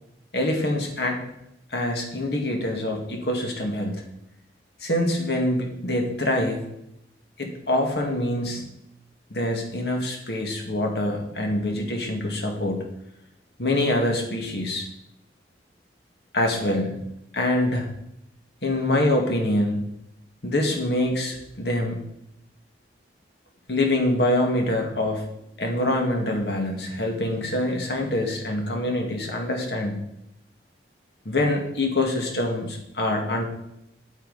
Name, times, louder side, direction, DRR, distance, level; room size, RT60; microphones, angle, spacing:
voice 1, 0.3-1.2 1.7-4.0 4.8-6.6 7.4-8.6 9.3-12.8 13.6-14.9 16.3-17.0 17.3-17.9 18.6-19.9 20.4-22.0 23.7-25.3 25.6-30.0 31.3-33.4, left 1 dB, 65° left, 2 dB, 2.0 m, -25 dB
9.3 x 8.4 x 4.1 m, 0.79 s
head